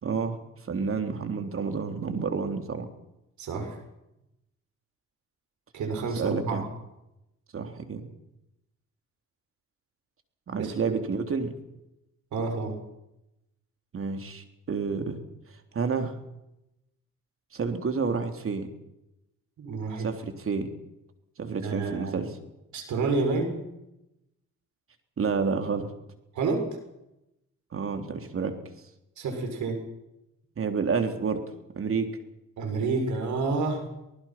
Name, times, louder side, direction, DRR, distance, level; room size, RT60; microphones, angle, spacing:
voice 1, 0.0-2.9 6.2-6.7 7.5-8.1 10.5-11.5 13.9-15.2 15.7-16.2 17.5-18.7 20.0-20.7 21.4-22.3 25.2-25.9 27.7-28.5 30.6-31.4 31.8-32.1, right 5 dB, 45° right, 6 dB, 3.6 m, -29 dB
voice 2, 3.4-3.8 5.7-6.7 10.6-10.7 12.3-12.8 19.6-20.1 21.6-22.2 22.7-23.6 26.3-26.7 29.2-29.8 32.6-33.9, right 3 dB, 75° right, 5 dB, 6.5 m, -29 dB
25.5 x 19.5 x 6.0 m, 0.88 s
cardioid pair, 90°, 30 cm